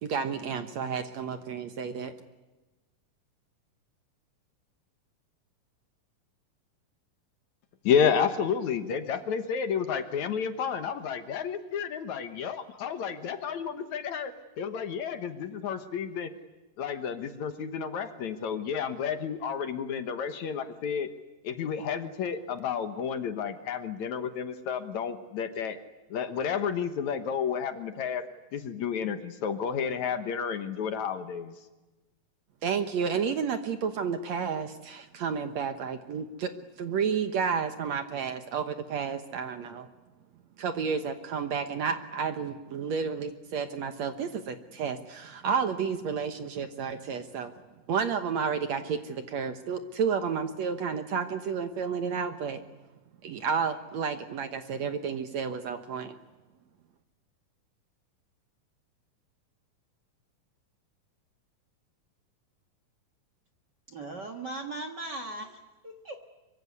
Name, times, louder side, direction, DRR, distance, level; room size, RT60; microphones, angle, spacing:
voice 1, 0.0-2.1 32.6-36.5 36.8-39.9 40.6-47.5 47.9-52.6 53.2-56.1, right 6 dB, 60° right, 8 dB, 2.0 m, -31 dB
voice 2, 7.8-16.3 16.8-21.1 21.4-25.8 26.1-28.2 28.5-31.6, left 7 dB, 65° left, 9 dB, 2.3 m, -31 dB
voice 3, 63.9-66.2, right 2 dB, 40° right, 7 dB, 1.6 m, -39 dB
25.0 x 23.5 x 9.7 m, 1.1 s
omnidirectional pair, 4.0 m